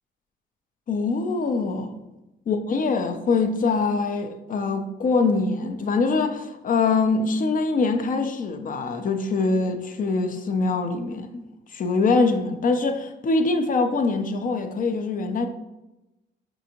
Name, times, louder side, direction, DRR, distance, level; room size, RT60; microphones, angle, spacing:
voice 1, 0.9-1.9 2.5-11.4 11.7-15.5, left 3 dB, 45° left, 0.5 m, -23 dB
5.3 x 2.6 x 2.9 m
cardioid pair, 90°, 20 cm